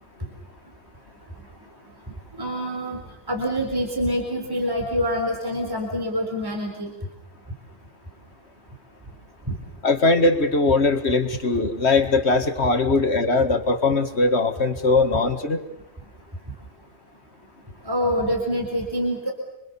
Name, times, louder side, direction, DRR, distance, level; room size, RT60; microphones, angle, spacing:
voice 1, 2.4-3.0 3.3-6.9 9.5-9.6 17.9-19.3, equal, 10° right, 2 dB, 4.2 m, -26 dB
voice 2, 9.8-15.6, left 3 dB, 40° left, 6 dB, 2.2 m, -20 dB
26.5 x 26.0 x 7.1 m, 0.88 s
omnidirectional pair, 1.8 m